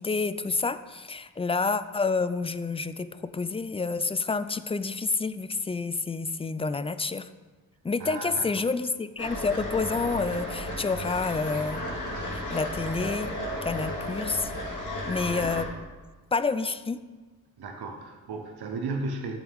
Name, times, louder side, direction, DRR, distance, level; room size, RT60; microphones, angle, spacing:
voice 1, 0.0-7.3 7.8-11.8 12.3-13.3 13.6-14.5 15.1-15.7 16.3-17.0, left 4 dB, 15° left, 13 dB, 0.4 m, -29 dB
voice 2, 8.0-8.7 17.6-19.4, right 3 dB, 85° right, 3 dB, 1.1 m, -35 dB
sound 1, 9.2-15.6, left 1 dB, 55° left, 2.4 m, -33 dB
11.5 x 7.2 x 3.6 m, 1.3 s
cardioid pair, 90°, 37 cm